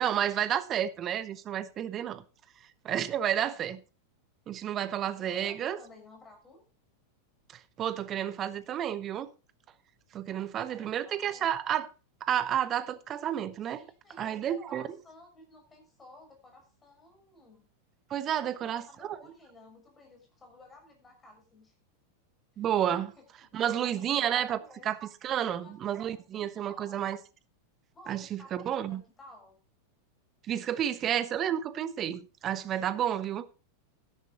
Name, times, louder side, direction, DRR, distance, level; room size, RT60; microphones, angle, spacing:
voice 1, 0.0-2.2 2.8-3.8 4.5-5.8 7.8-9.3 10.1-11.9 12.2-13.8 14.2-14.9 18.1-18.8 19.1-19.2 22.6-23.1 23.5-24.6 24.8-27.2 28.1-29.0 30.5-33.5, right 10 dB, 30° right, 1.1 m, -31 dB
voice 2, 3.0-3.7 5.1-6.6 10.3-11.6 13.7-17.7 18.3-21.7 22.5-22.7 22.9-23.2 23.6-24.9 25.4-27.1 27.9-29.6, left 2 dB, 15° left, 6.6 m, -54 dB
12.5 x 11.0 x 4.2 m
figure-of-eight pair, 90°, 0 cm